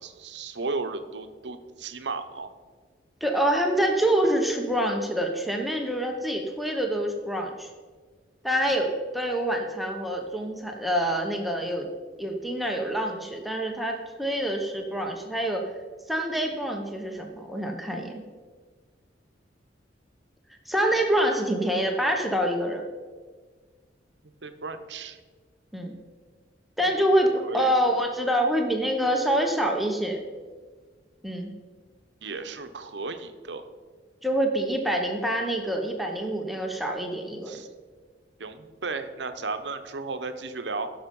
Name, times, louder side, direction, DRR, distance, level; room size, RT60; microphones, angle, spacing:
voice 1, 0.0-2.5 24.4-25.2 26.8-27.7 32.2-33.7 37.4-37.7 38.4-40.9, right 3 dB, 70° right, 9 dB, 0.9 m, -35 dB
voice 2, 3.2-7.7 8.4-11.9 12.2-15.7 16.1-18.2 20.7-22.8 25.7-25.9 26.8-30.2 31.2-31.5 34.2-37.6, right 1 dB, ahead, 1 dB, 1.0 m, -26 dB
15.5 x 6.6 x 5.4 m, 1.5 s
head